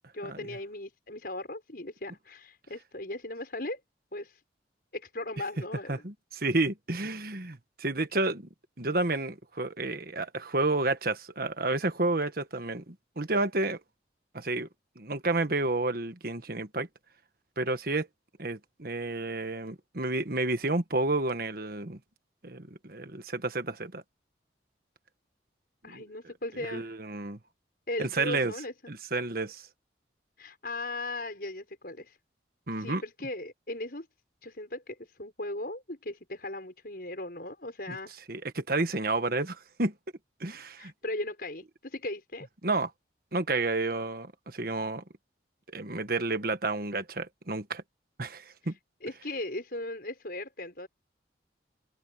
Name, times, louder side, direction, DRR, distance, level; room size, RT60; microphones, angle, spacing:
voice 1, 0.1-3.8 4.1-4.4 4.9-6.0 25.8-27.0 27.9-28.9 30.4-32.2 32.7-34.1 34.4-38.2 40.8-42.5 48.6-48.7 49.0-50.9, left 2 dB, 55° left, 6.2 m, -38 dB
voice 2, 5.9-8.5 8.8-13.8 14.3-14.7 14.9-16.9 17.6-18.1 18.4-22.0 22.4-24.0 25.9-26.0 26.6-27.4 28.0-28.5 28.9-29.6 32.7-33.0 37.9-38.0 38.3-39.9 40.4-40.9 42.6-42.9 43.3-45.0 45.7-47.8 48.2-48.7, right 2 dB, 55° right, 1.5 m, -30 dB
open air
head